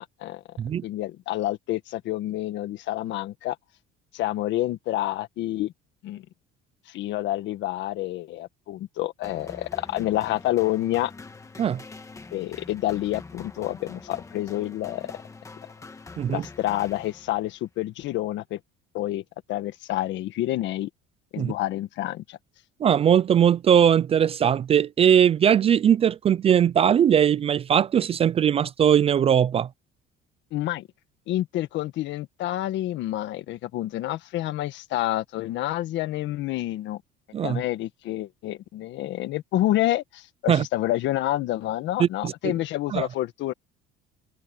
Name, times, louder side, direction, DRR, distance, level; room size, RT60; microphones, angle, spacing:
voice 1, 0.0-0.4 0.8-3.6 4.1-5.7 6.0-6.2 6.9-11.1 12.3-15.1 16.3-18.6 18.9-19.2 19.5-20.9 21.3-22.4 30.5-30.9 31.3-37.0 37.4-43.5, left 15 dB, 65° left, 1.6 m, -28 dB
sound 1, 9.2-17.6, left 3 dB, 15° left, 1.6 m, -44 dB
voice 2, 22.8-29.7 37.3-37.6 40.5-40.6 42.0-42.5 42.9-43.1, right 9 dB, 30° right, 0.4 m, -20 dB
cardioid pair, 145°, 20 cm